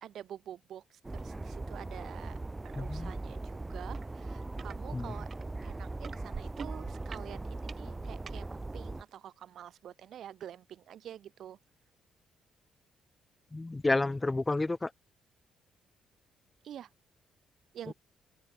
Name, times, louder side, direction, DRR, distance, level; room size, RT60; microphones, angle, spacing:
voice 1, 0.0-2.4 2.6-5.3 5.6-11.6 16.6-16.9 17.7-17.9, right 10 dB, 70° right, 2.4 m, -47 dB
sound 1, 1.0-9.0, right 2 dB, 20° right, 1.0 m, -40 dB
voice 2, 2.8-3.1 4.9-5.1 13.5-14.9 17.9-18.0, left 2 dB, 20° left, 0.5 m, -30 dB
sound 2, 3.9-4.1 4.4-4.8 5.3-8.4 9.1-9.2, right 6 dB, 45° right, 2.1 m, -45 dB
open air
cardioid pair, 90°, 0 cm